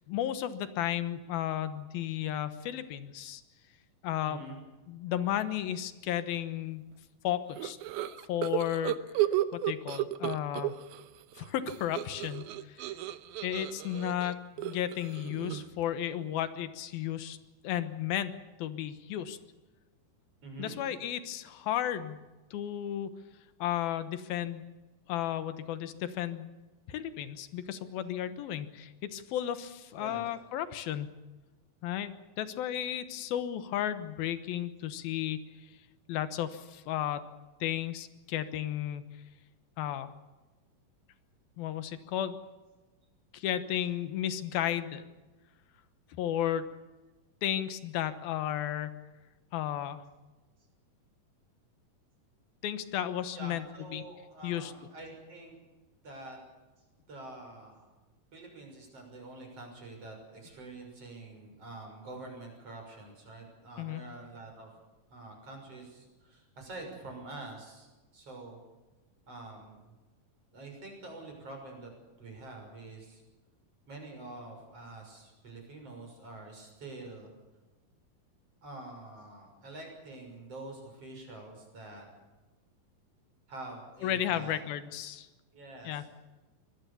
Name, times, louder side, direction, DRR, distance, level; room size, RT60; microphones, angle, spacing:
voice 1, 0.0-3.4 4.0-4.4 4.9-6.8 7.2-7.8 8.3-9.0 9.5-10.8 11.4-12.9 13.4-17.4 17.6-18.3 18.6-19.4 20.6-22.2 22.5-23.1 23.6-24.8 25.1-26.5 26.9-31.1 31.8-32.1 32.4-35.7 36.1-37.2 37.6-39.0 39.8-40.1 41.6-42.4 43.3-45.0 46.2-46.7 47.4-49.0 49.5-50.0 52.6-53.6 53.9-54.0 54.4-54.7 63.8-64.0 84.0-85.3 85.8-86.0, left 11 dB, 85° left, 11 dB, 3.0 m, -33 dB
voice 2, 4.2-4.6 20.4-20.8 29.9-30.2 53.3-55.6 56.0-56.4 57.1-57.9 58.3-64.7 65.1-67.9 68.1-68.6 69.3-69.9 70.5-71.9 72.2-73.2 73.9-77.3 78.6-82.1 83.5-84.6 85.5-86.1, right 2 dB, 40° right, 2 dB, 7.2 m, -46 dB
sound 1, 7.6-11.0 11.3-15.8, right 13 dB, 90° right, 2.8 m, -33 dB
24.5 x 19.5 x 7.0 m, 1.2 s
omnidirectional pair, 4.2 m